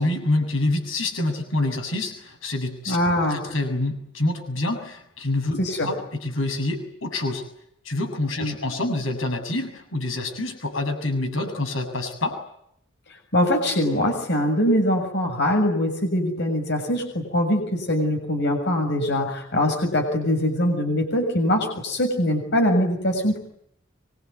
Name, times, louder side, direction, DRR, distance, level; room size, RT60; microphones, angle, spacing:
voice 1, 0.0-3.0 3.3-5.6 5.8-7.4 7.8-12.4, left 2 dB, 80° left, 5 dB, 7.4 m, -26 dB
voice 2, 2.9-3.4 5.6-5.9 8.4-8.5 13.3-23.4, left 1 dB, 60° left, 4 dB, 6.9 m, -22 dB
25.0 x 24.5 x 9.7 m, 0.74 s
head